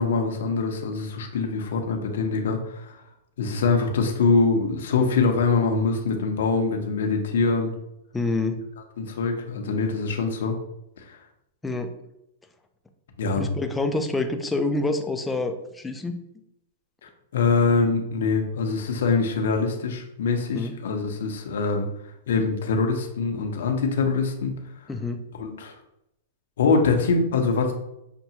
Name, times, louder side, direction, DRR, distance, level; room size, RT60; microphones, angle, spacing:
voice 1, 0.0-3.0 3.4-7.7 9.0-10.6 11.0-11.2 13.2-13.4 17.3-21.9 22.3-24.5 25.3-25.7 26.6-27.7, left 4 dB, 75° left, 3 dB, 0.7 m, -24 dB
voice 2, 8.1-8.6 11.6-11.9 13.4-16.2 20.5-20.7 24.9-25.2, left 2 dB, 10° left, 5 dB, 0.4 m, -27 dB
5.8 x 2.2 x 2.8 m, 0.83 s
hypercardioid pair, 150°, 0 cm